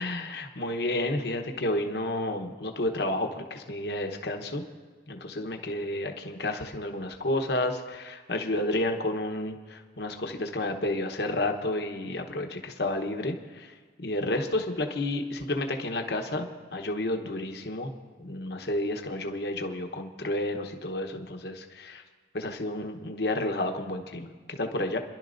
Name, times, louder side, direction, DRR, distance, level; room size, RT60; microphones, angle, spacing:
voice 1, 0.0-4.6 5.1-17.9 18.2-22.0 22.3-25.0, left 1 dB, 70° left, 4 dB, 1.0 m, -31 dB
27.0 x 11.5 x 2.6 m, 1.5 s
head